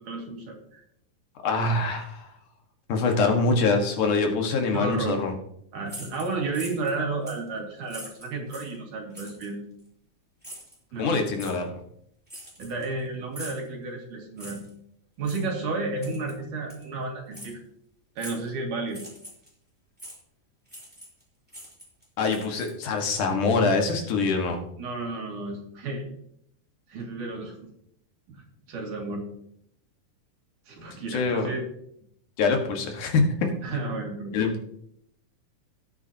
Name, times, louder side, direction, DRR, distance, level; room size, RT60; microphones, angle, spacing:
voice 1, 0.0-0.8 4.7-5.2 5.7-9.6 10.9-11.2 12.6-14.6 15.2-17.6 18.2-19.0 24.8-26.1 26.9-27.5 28.3-28.4 28.7-29.2 30.7-31.6 33.6-34.5, right 3 dB, 75° right, 0 dB, 3.8 m, -32 dB
voice 2, 1.4-2.3 2.9-5.3 11.0-11.7 22.2-24.6 31.1-31.5 32.4-33.2 34.3-34.5, left 4 dB, 75° left, 3 dB, 3.1 m, -24 dB
sound 1, 5.9-6.9 7.3-7.5 7.9-8.8 9.1-9.5 10.4-10.8 11.4-11.6 12.3-13.0 13.3-13.7 14.4-14.7 15.2-15.4 16.0-16.3 16.7-16.8 17.3-17.5 18.2-18.5 18.9-19.5 20.0-20.2 20.7-21.2 21.5-23.0, right 1 dB, 5° right, 3.1 m, -43 dB
18.0 x 8.4 x 2.8 m, 0.71 s
omnidirectional pair, 3.6 m